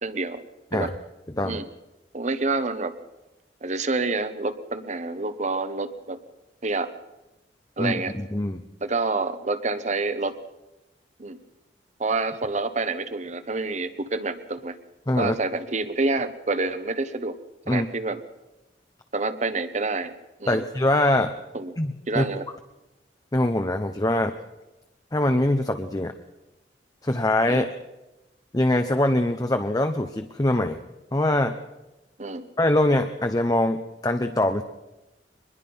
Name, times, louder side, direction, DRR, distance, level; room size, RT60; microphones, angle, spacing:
voice 1, 0.0-0.4 0.7-0.9 1.4-1.6 2.1-2.9 3.6-6.2 6.6-6.9 7.8-8.1 8.8-10.3 11.2-11.4 12.0-14.8 15.2-17.4 17.7-18.2 19.1-20.1 20.4-20.6 21.5-21.7 22.1-22.4 27.5-27.7 32.2-32.5, right 3 dB, 40° right, 11 dB, 1.2 m, -27 dB
voice 2, 7.8-8.6 15.1-15.3 17.7-17.9 20.5-21.3 21.8-22.2 23.3-24.3 25.1-26.1 27.0-27.8 28.5-30.8 31.1-31.6 32.6-34.6, left 1 dB, 20° left, 7 dB, 0.8 m, -23 dB
23.5 x 21.0 x 5.6 m, 1.0 s
head